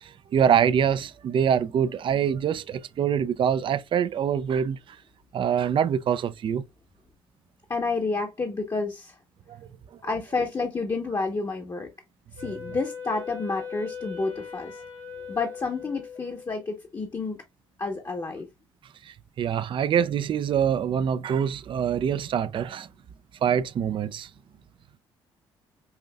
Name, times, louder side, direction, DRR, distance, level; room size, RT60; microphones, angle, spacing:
voice 1, 0.0-4.8 5.3-6.6 9.5-9.6 19.1-22.9 23.4-24.3, right 8 dB, 45° right, 0.4 m, -25 dB
voice 2, 7.7-9.2 10.0-11.9 12.4-14.8 15.3-17.4 17.8-18.5, left 3 dB, 30° left, 0.9 m, -30 dB
Wind instrument woodwind instrument, 12.4-16.7, left 6 dB, 70° left, 1.4 m, -39 dB
5.6 x 2.5 x 2.2 m
hypercardioid pair, 55°, 12 cm